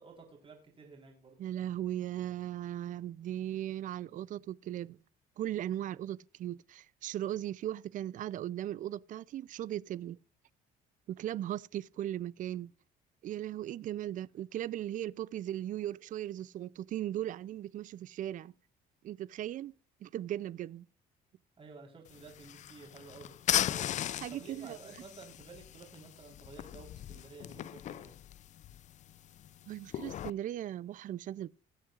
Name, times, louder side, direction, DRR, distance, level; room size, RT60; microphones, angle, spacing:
voice 1, 0.0-1.4 21.6-23.4 23.7-28.1, right 4 dB, 30° right, 4.0 m, -52 dB
voice 2, 1.4-5.0 5.4-10.2 11.1-12.7 13.2-18.5 19.0-19.7 20.0-20.8 24.2-24.8 29.7-31.5, right 12 dB, 50° right, 0.4 m, -38 dB
sound 1, 22.1-30.3, left 11 dB, 45° left, 0.4 m, -38 dB
20.0 x 7.5 x 2.4 m
cardioid pair, 110°, 17 cm